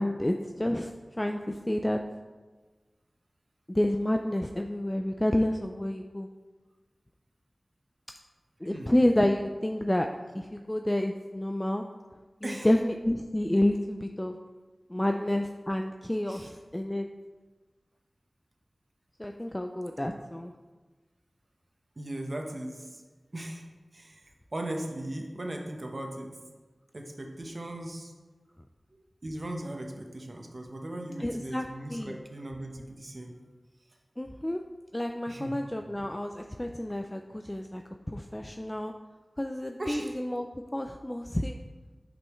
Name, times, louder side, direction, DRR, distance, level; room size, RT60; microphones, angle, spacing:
voice 1, 0.0-2.0 3.7-6.3 8.6-10.1 10.3-11.8 12.4-14.4 14.9-17.1 19.2-20.5 31.2-32.1 34.2-34.6 34.9-37.8 38.1-38.9 39.4-41.6, left 1 dB, 15° left, 4 dB, 0.3 m, -29 dB
voice 2, 8.6-8.9 12.4-12.7 16.3-16.5 20.1-20.2 22.0-23.0 23.3-23.6 23.9-24.2 24.5-26.3 26.9-28.1 28.9-33.4 35.3-35.6 39.8-40.1, right 1 dB, 50° right, 2 dB, 0.9 m, -38 dB
8.4 x 5.4 x 3.1 m, 1.3 s
wide cardioid pair, 65°, 0 cm